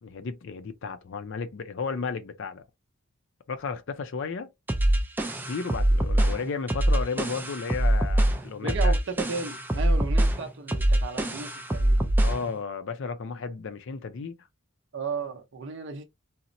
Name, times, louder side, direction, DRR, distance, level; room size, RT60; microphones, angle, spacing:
voice 1, 0.0-2.6 3.5-4.5 5.5-8.9 12.2-14.4, left 5 dB, 60° left, 0.4 m, -33 dB
sound 1, 4.7-12.5, right 1 dB, 10° right, 0.3 m, -24 dB
voice 2, 8.6-12.1 14.9-16.0, right 4 dB, 60° right, 0.7 m, -34 dB
4.1 x 2.0 x 2.5 m
head